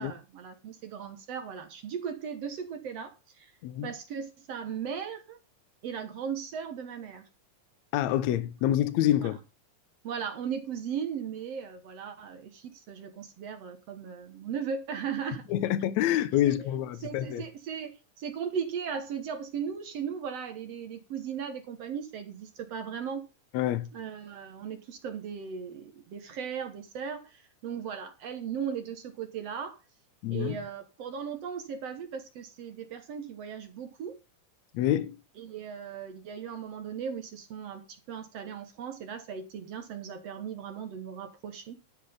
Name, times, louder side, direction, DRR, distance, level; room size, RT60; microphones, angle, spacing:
voice 1, 0.0-3.5 3.8-5.4 5.8-7.3 9.2-9.3 10.0-15.5 16.5-16.6 17.0-23.3 23.9-29.8 30.3-34.2 35.4-41.8, right 7 dB, 60° right, 2.0 m, -37 dB
voice 2, 3.6-3.9 7.9-9.4 15.5-17.4 23.5-23.9 30.2-30.6 34.7-35.2, left 12 dB, 70° left, 1.9 m, -27 dB
11.5 x 6.4 x 5.2 m
omnidirectional pair, 3.8 m